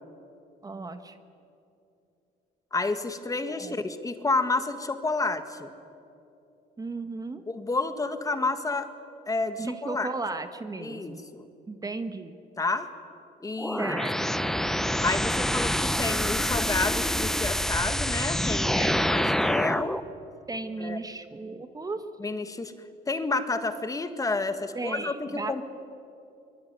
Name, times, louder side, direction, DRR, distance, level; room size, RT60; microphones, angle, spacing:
voice 1, 0.6-1.2 3.5-3.8 6.8-7.4 9.6-11.2 11.7-12.4 13.8-14.2 18.7-19.1 20.5-22.0 24.7-25.6, right 3 dB, 20° right, 9 dB, 1.4 m, -35 dB
voice 2, 2.7-5.7 7.5-8.9 9.3-10.1 10.8-11.5 12.6-12.9 13.4-13.9 14.3-14.4 15.0-20.0 20.8-21.0 22.2-22.7 23.1-25.6, left 3 dB, 20° left, 9 dB, 1.8 m, -30 dB
sound 1, 13.6-20.0, equal, ahead, 0.8 m, -26 dB
24.0 x 23.0 x 9.4 m, 2.7 s
cardioid pair, 110°, 17 cm